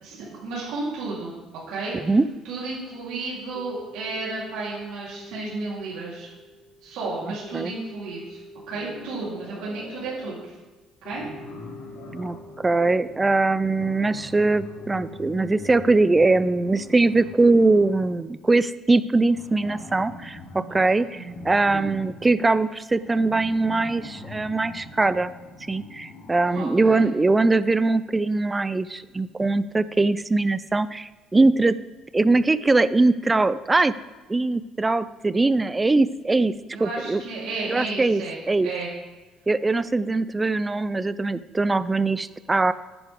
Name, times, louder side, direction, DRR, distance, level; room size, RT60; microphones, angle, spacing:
voice 1, 0.0-1.3 1.7-1.9 2.4-6.3 6.8-8.4 8.7-10.5 11.0-11.2 20.9-21.1 21.6-22.0 26.5-27.1 36.7-38.4 38.6-38.9, right 3 dB, 85° right, -6 dB, 3.6 m, -33 dB
voice 2, 1.9-2.3 7.5-7.7 12.1-25.3 25.7-31.8 32.1-33.9 34.3-36.5 36.8-37.2 37.7-38.2 38.5-38.7 39.5-42.7, right 3 dB, 15° right, 15 dB, 0.3 m, -21 dB
sound 1, 2.9-18.3, equal, 50° left, 3.6 m, -47 dB
sound 2, 8.7-10.4 11.0-18.2 19.2-26.6, left 2 dB, 80° left, 3.1 m, -43 dB
9.9 x 9.8 x 3.6 m, 1.2 s
cardioid pair, 140°, 0 cm